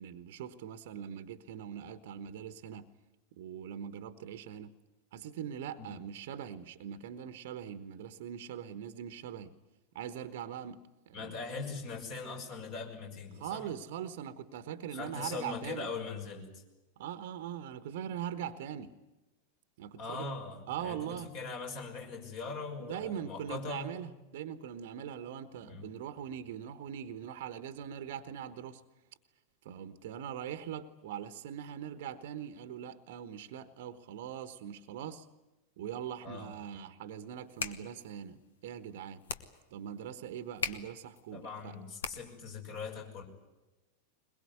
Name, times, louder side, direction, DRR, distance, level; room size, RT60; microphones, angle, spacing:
voice 1, 0.0-2.9 3.3-4.7 5.1-9.5 9.9-11.3 13.4-15.9 17.0-18.9 19.8-20.4 20.7-21.3 22.8-28.8 29.6-35.3 35.8-39.2 39.7-41.8, right 9 dB, 55° right, 1.2 m, -42 dB
voice 2, 11.1-13.7 14.9-16.6 20.0-23.9 25.6-25.9 36.2-36.5 41.3-43.2, left 4 dB, 45° left, 6.1 m, -41 dB
sound 1, 37.3-42.5, left 5 dB, 65° left, 1.5 m, -42 dB
22.0 x 22.0 x 9.5 m
figure-of-eight pair, 90°, 0 cm